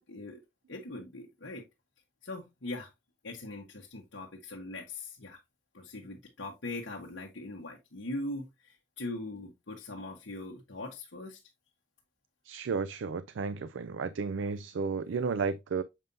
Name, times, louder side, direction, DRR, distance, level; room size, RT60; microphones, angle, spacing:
voice 1, 0.1-0.4 0.7-1.6 2.2-2.9 3.2-5.4 5.7-11.4, left 2 dB, 85° left, 1.2 m, -41 dB
voice 2, 12.4-15.8, right 5 dB, 80° right, 0.4 m, -33 dB
7.3 x 5.3 x 2.6 m
head